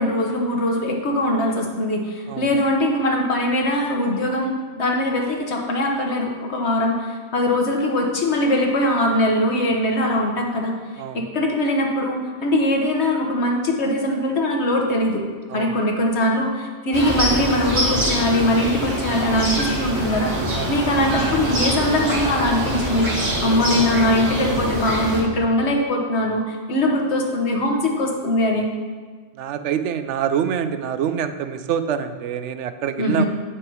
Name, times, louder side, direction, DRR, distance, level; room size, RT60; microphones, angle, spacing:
voice 1, 0.0-10.7 11.1-15.2 15.5-23.1 23.4-28.7 33.0-33.3, left 1 dB, 65° left, 1 dB, 1.3 m, -21 dB
voice 2, 11.0-11.3 15.5-15.8 20.5-20.7 29.4-33.3, right 8 dB, 75° right, 10 dB, 0.9 m, -25 dB
sound 1, 16.9-25.2, right 1 dB, 55° right, 1.8 m, -24 dB
8.6 x 6.0 x 4.6 m, 1.5 s
omnidirectional pair, 1.2 m